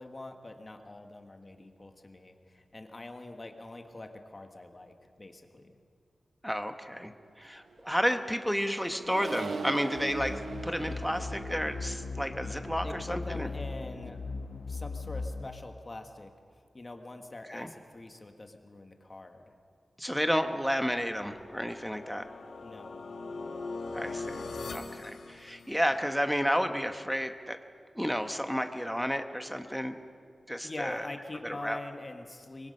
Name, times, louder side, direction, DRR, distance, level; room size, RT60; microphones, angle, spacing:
voice 1, 0.0-5.8 12.8-14.2 14.7-16.3 16.7-19.5 22.6-23.0 30.6-32.7, left 2 dB, 30° left, 5 dB, 1.5 m, -44 dB
voice 2, 6.4-7.1 7.4-13.5 17.5-17.7 20.0-22.3 23.9-24.4 24.7-27.6 27.9-29.9 30.5-31.1 31.4-31.8, equal, ahead, 7 dB, 1.0 m, -31 dB
Accelerating revving vroom, 7.7-14.3, right 4 dB, 70° right, 0.8 m, -42 dB
sound 1, 9.9-15.5, left 3 dB, 70° left, 1.2 m, -38 dB
sound 2, 20.9-26.1, left 3 dB, 90° left, 1.4 m, -41 dB
24.5 x 22.0 x 5.5 m, 2.2 s
wide cardioid pair, 150°, 0 cm